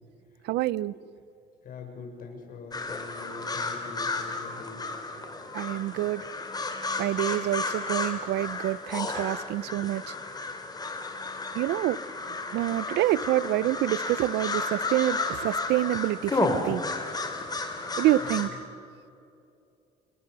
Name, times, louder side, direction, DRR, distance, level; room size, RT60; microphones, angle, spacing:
voice 1, 0.4-0.9 5.5-6.2 7.0-10.1 11.5-12.0 12.5-16.8 18.0-18.5, right 15 dB, 80° right, 20 dB, 0.6 m, -27 dB
voice 2, 1.6-4.8 18.4-18.6, left 4 dB, 55° left, 3 dB, 6.6 m, -43 dB
sound 1, 2.7-18.5, left 3 dB, 25° left, 3.3 m, -33 dB
29.5 x 22.5 x 6.8 m, 2.7 s
cardioid pair, 110°, 17 cm